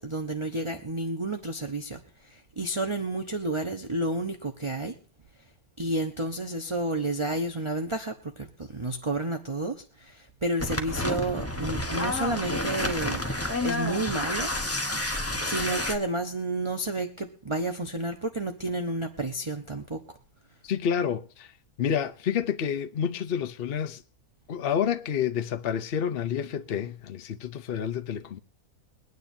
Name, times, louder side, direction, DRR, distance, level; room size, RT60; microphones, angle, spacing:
voice 1, 0.0-4.9 5.8-13.2 13.6-14.5 15.4-20.2, right 2 dB, 25° right, 1.0 m, -31 dB
sound 1, 10.6-16.0, left 1 dB, 10° left, 0.9 m, -30 dB
voice 2, 20.6-21.5 21.8-24.0 24.5-28.4, left 8 dB, 50° left, 0.7 m, -29 dB
23.0 x 9.5 x 2.7 m
omnidirectional pair, 1.5 m